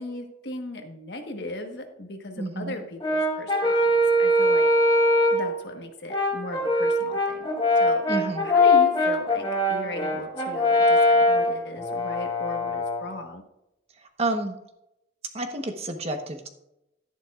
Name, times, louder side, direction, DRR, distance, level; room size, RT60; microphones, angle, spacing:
voice 1, 0.0-4.7 5.3-7.5 7.8-13.4, left 1 dB, 70° left, 4 dB, 1.4 m, -37 dB
voice 2, 2.4-2.7 8.1-8.4 14.0-14.6 15.3-16.5, right 2 dB, 35° right, 5 dB, 1.1 m, -30 dB
Brass instrument, 3.0-5.5 6.1-13.1, left 1 dB, 25° left, 1.8 m, -22 dB
12.0 x 10.0 x 2.5 m, 0.84 s
head